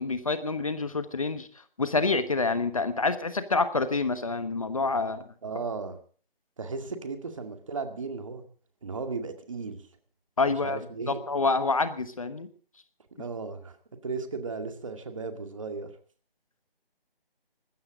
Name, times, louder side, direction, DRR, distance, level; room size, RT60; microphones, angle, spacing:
voice 1, 0.0-5.3 10.4-12.5, left 3 dB, 35° left, 11 dB, 1.2 m, -27 dB
voice 2, 5.4-6.0 6.6-8.4 8.8-9.9 10.5-11.2 13.2-13.8 14.0-15.9, right 4 dB, 35° right, 6 dB, 2.2 m, -35 dB
20.0 x 15.5 x 3.8 m, 0.43 s
figure-of-eight pair, 165°, 30 cm